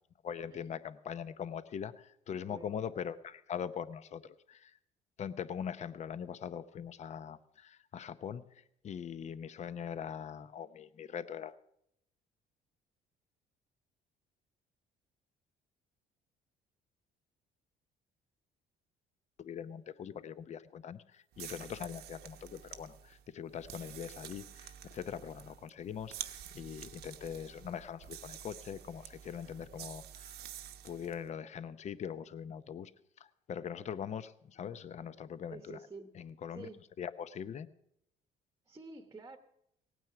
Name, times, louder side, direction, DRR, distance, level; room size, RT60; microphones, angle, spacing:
voice 1, 0.2-4.8 5.2-11.6 19.4-30.4 30.8-32.9 33.2-35.8 36.1-36.7 37.0-37.7, left 8 dB, 40° left, 14 dB, 0.7 m, -42 dB
voice 2, 2.5-2.8 35.5-36.1 36.5-36.8 38.7-39.4, right 3 dB, 15° right, 7 dB, 1.0 m, -49 dB
sound 1, 21.3-31.2, right 11 dB, 75° right, 0.9 m, -49 dB
17.5 x 9.2 x 5.7 m, 0.76 s
cardioid pair, 110°, 17 cm